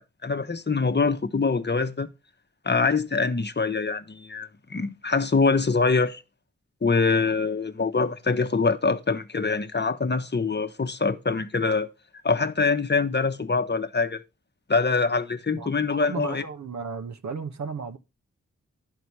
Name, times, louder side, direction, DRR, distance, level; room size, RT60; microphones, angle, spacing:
voice 1, 0.0-2.1 2.6-6.2 6.8-11.9 12.2-14.2 14.7-16.4, left 4 dB, 35° left, 1.0 m, -24 dB
voice 2, 16.0-18.0, right 5 dB, 65° right, 1.0 m, -34 dB
11.5 x 4.1 x 4.7 m
cardioid pair, 40°, 31 cm